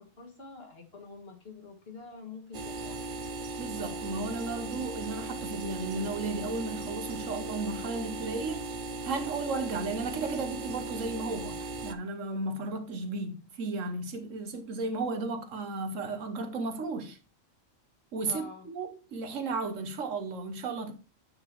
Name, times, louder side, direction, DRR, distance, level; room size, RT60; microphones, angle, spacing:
voice 1, 0.2-3.0 18.3-18.7, left 4 dB, 55° left, 2.0 m, -46 dB
sound 1, 2.5-11.9, right 2 dB, 50° right, 0.8 m, -37 dB
voice 2, 3.6-8.7 9.0-17.2 18.1-20.9, right 3 dB, 85° right, 1.4 m, -34 dB
8.7 x 3.9 x 4.6 m
omnidirectional pair, 1.3 m